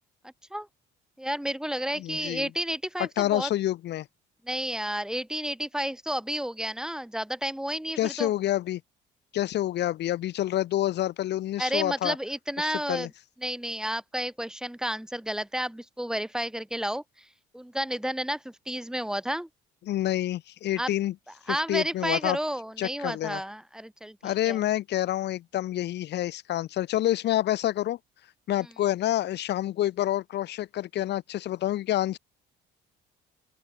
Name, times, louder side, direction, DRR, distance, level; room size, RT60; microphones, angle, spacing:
voice 1, 0.2-0.7 1.2-3.5 4.4-8.3 11.6-13.1 13.4-17.0 17.5-19.5 20.8-20.9 21.5-24.6, equal, 5° right, 1.8 m, -31 dB
voice 2, 2.0-2.5 3.0-4.1 7.9-8.8 9.3-12.2 12.6-13.1 19.9-21.1 21.5-22.4 22.8-23.4 24.2-28.0 28.5-32.2, left 13 dB, 60° left, 1.2 m, -28 dB
open air
cardioid pair, 130°, 20 cm